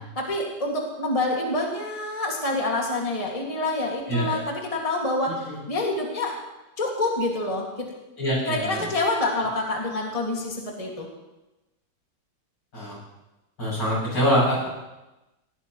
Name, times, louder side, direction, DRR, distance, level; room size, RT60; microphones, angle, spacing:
voice 1, 0.2-6.4 6.8-7.9 8.4-11.1, left 2 dB, 20° left, -1 dB, 2.0 m, -27 dB
voice 2, 8.2-8.9 12.7-13.0 13.6-14.7, equal, 75° left, -6 dB, 8.2 m, -24 dB
19.5 x 17.5 x 3.1 m, 1.0 s
omnidirectional pair, 2.0 m